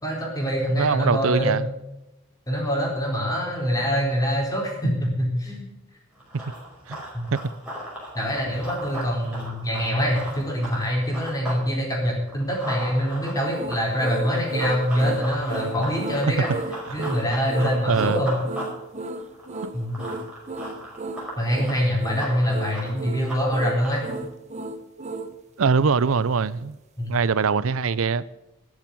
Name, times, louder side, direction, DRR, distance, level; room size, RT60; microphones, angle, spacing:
voice 1, 0.0-1.7 2.5-5.7 7.1-7.3 8.1-16.5 16.9-18.4 19.7-20.0 21.4-24.0 27.0-27.2, equal, 15° left, 4.1 m, -24 dB
voice 2, 0.7-1.6 6.9-7.0 7.3-7.4 16.5-16.6 17.9-18.2 19.6-19.7 25.6-26.8 27.1-28.2, right 5 dB, 65° right, 0.5 m, -22 dB
Run, 6.2-11.6 12.0-24.2, equal, 5° right, 5.4 m, -38 dB
sound 1, 13.5-25.3, right 2 dB, 35° right, 0.9 m, -34 dB
13.0 x 7.4 x 9.5 m
head